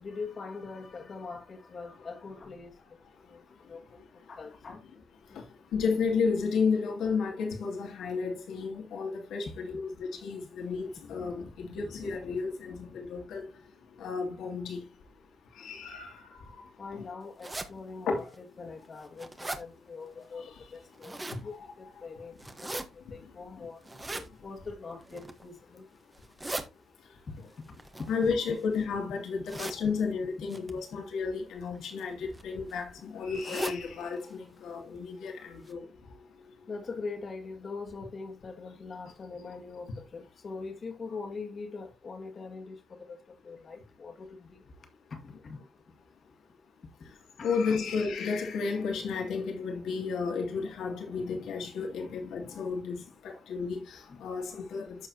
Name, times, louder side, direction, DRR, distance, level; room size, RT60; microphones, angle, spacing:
voice 1, 0.0-3.0 3.2-4.8 5.3-5.4 9.7-9.8 12.7-12.8 16.8-23.8 24.4-25.9 27.3-28.3 36.7-44.7 45.1-45.6 47.4-47.8 52.0-52.1 52.5-52.7 53.3-53.5 54.1-54.3, left 4 dB, 45° left, 2.0 m, -43 dB
voice 2, 5.7-13.5 14.0-14.8 15.6-16.2 16.9-17.1 18.1-18.3 28.1-35.8 47.4-55.1, left 5 dB, 75° left, 2.6 m, -32 dB
sound 1, 17.4-17.7 18.3-18.4 18.8-19.6 20.7-21.4 22.4-22.8 23.8-24.3 25.0-25.4 26.1-26.6 27.8-28.8 29.4-29.8 30.5-30.7 31.7-32.0 32.3-32.4 32.7-32.8 33.3-33.8 34.2-34.3 34.6-34.7 35.3-35.4 35.7-35.8, right 2 dB, 15° right, 1.2 m, -38 dB
13.0 x 4.6 x 2.8 m
cardioid pair, 90°, 0 cm